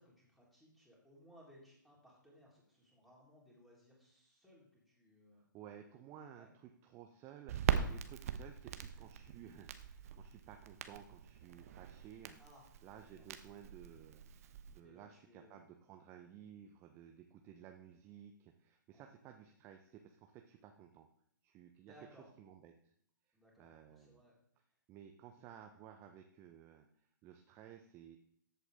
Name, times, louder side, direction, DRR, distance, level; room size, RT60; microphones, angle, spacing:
voice 1, 0.0-5.4 6.4-6.5 12.4-13.3 14.8-15.6 18.9-19.1 21.8-22.3 23.3-24.3 25.3-25.4, equal, ahead, -5 dB, 3.8 m, -63 dB
voice 2, 5.5-12.4 12.8-21.1 21.4-21.9 22.4-22.9 23.6-24.2 24.9-28.2, right 9 dB, 20° right, 5 dB, 0.8 m, -56 dB
Crackle, 7.5-14.8, right 8 dB, 45° right, 1.0 m, -41 dB
14.0 x 8.3 x 3.6 m, 0.68 s
figure-of-eight pair, 135°, 11 cm